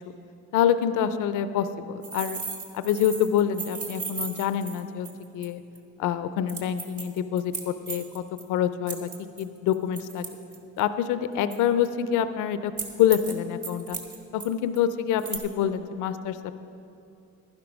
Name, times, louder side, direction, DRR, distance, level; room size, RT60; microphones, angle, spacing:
voice 1, 0.5-2.4 2.7-5.1 5.3-5.6 6.0-8.2 8.5-9.1 9.4-10.3 10.8-12.7 13.0-14.0 14.3-16.5, left 9 dB, 90° left, 12 dB, 0.5 m, -26 dB
sound 1, 2.0-5.5 5.7-5.8 6.5-8.4 8.9-10.8 11.5-11.9 12.8-13.3 13.6-14.5 14.7-14.8 15.2-15.4, right 4 dB, 50° right, 1.7 m, -36 dB
12.0 x 10.5 x 5.2 m, 2.7 s
cardioid pair, 90°, 30 cm